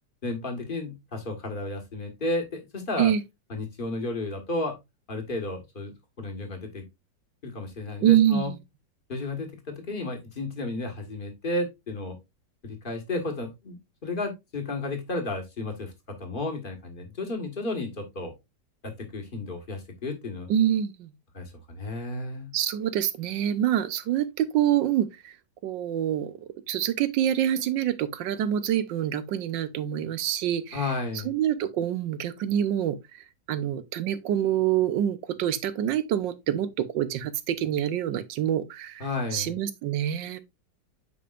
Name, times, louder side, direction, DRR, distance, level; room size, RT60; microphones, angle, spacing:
voice 1, 0.2-3.1 3.5-4.8 5.1-6.8 7.4-8.5 9.1-12.2 12.6-13.8 14.0-15.9 16.2-18.3 18.8-20.5 21.3-22.5 30.7-31.3 39.0-39.5, left 2 dB, 30° left, 1.6 m, -32 dB
voice 2, 8.0-8.6 20.5-21.1 22.5-25.3 25.6-26.4 26.7-40.4, right 11 dB, 85° right, 1.5 m, -26 dB
8.8 x 5.1 x 2.5 m
omnidirectional pair, 1.9 m